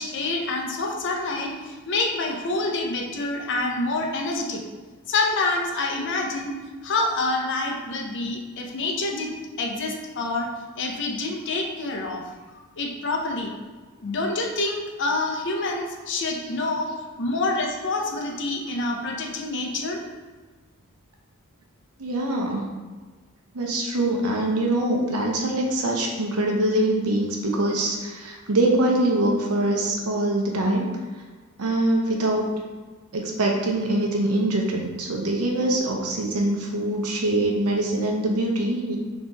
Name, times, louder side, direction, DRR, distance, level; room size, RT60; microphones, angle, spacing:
voice 1, 0.0-4.6 5.1-6.5 6.8-10.5 10.8-12.3 12.8-13.5 14.0-16.9 17.2-20.0, left 2 dB, 55° left, 1 dB, 0.7 m, -27 dB
voice 2, 22.0-22.7 23.5-30.9 31.6-32.5 33.1-39.0, right 1 dB, 85° right, 0 dB, 0.8 m, -23 dB
3.7 x 3.0 x 4.0 m, 1.4 s
head